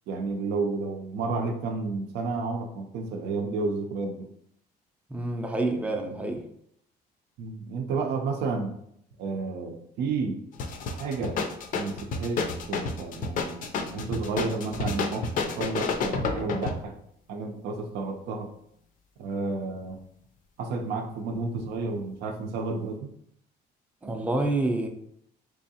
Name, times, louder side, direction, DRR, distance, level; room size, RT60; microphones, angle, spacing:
voice 1, 0.1-4.3 7.4-8.8 9.2-10.4 11.0-11.4 11.7-15.3 15.6-16.9 17.3-18.5 19.2-20.0 20.6-23.1, right 4 dB, 80° right, 0.5 m, -31 dB
voice 2, 5.1-6.4 24.0-24.9, right 2 dB, 10° right, 0.5 m, -28 dB
sound 1, 10.5-16.8, left 4 dB, 55° left, 0.5 m, -30 dB
3.5 x 3.1 x 2.7 m
cardioid pair, 110°, 17 cm